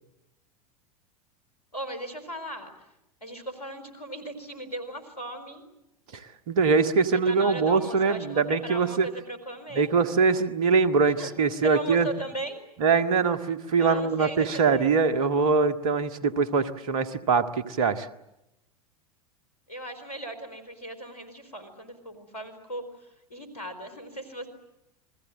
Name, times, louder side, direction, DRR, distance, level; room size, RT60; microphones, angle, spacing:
voice 1, 1.7-2.9 3.2-5.6 7.1-9.9 11.1-11.3 11.6-12.6 13.8-14.9 19.7-24.5, right 1 dB, 85° left, 10 dB, 4.7 m, -38 dB
voice 2, 6.5-9.1 9.8-12.1 12.8-18.1, right 4 dB, 65° right, 11 dB, 1.8 m, -23 dB
30.0 x 22.5 x 7.7 m, 0.87 s
figure-of-eight pair, 85°, 20 cm